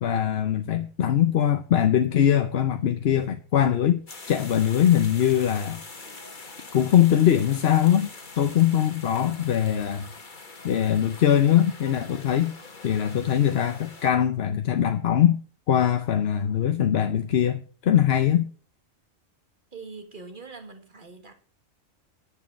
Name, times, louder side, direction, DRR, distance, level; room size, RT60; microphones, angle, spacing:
voice 1, 0.0-4.0 4.3-5.8 6.7-8.1 8.4-10.1 10.6-12.5 12.8-15.4 15.7-18.5, left 10 dB, 55° left, 0.9 m, -22 dB
sound 1, 4.1-14.1, left 3 dB, 40° left, 1.6 m, -44 dB
voice 2, 19.7-21.3, right 4 dB, 40° right, 1.8 m, -42 dB
11.0 x 6.7 x 6.2 m
omnidirectional pair, 1.3 m